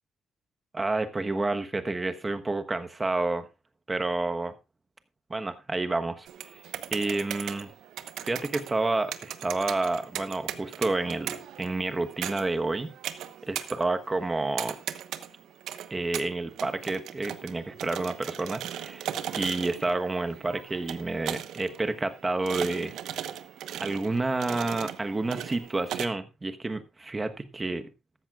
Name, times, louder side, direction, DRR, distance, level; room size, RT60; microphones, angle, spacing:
voice 1, 0.7-3.5 3.9-4.5 5.3-6.6 6.9-7.7 8.2-12.9 13.5-14.8 15.9-19.1 19.4-22.9 23.2-23.3 23.8-27.9, right 2 dB, 15° right, 9 dB, 1.2 m, -29 dB
sound 1, 6.3-26.1, right 10 dB, 70° right, 1.1 m, -38 dB
14.0 x 13.0 x 2.4 m, 0.25 s
cardioid pair, 145°, 0 cm